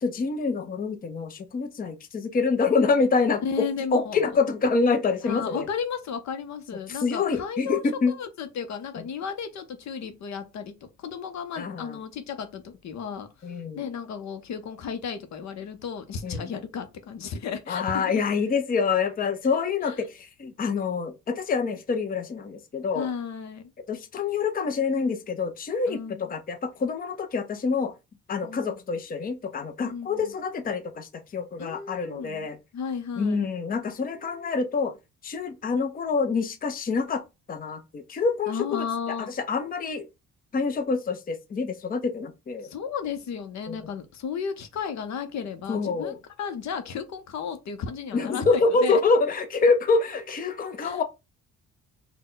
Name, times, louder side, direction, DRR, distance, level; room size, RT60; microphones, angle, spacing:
voice 1, 0.0-3.4 3.9-5.7 6.9-8.1 11.6-12.0 13.4-13.9 16.2-16.5 17.7-23.1 23.9-27.9 28.3-32.6 33.2-35.0 35.2-37.2 37.5-40.1 40.5-42.7 43.7-43.8 45.7-46.2 48.1-51.0, left 4 dB, 30° left, 0.6 m, -26 dB
voice 2, 3.4-4.2 5.2-13.5 13.7-18.1 19.8-19.9 22.9-23.7 25.9-26.3 28.4-28.8 29.8-30.3 31.6-32.5 32.7-33.5 38.5-39.3 42.6-49.0 50.8-51.0, left 6 dB, 65° left, 0.8 m, -34 dB
4.0 x 2.2 x 3.8 m
cardioid pair, 90°, 30 cm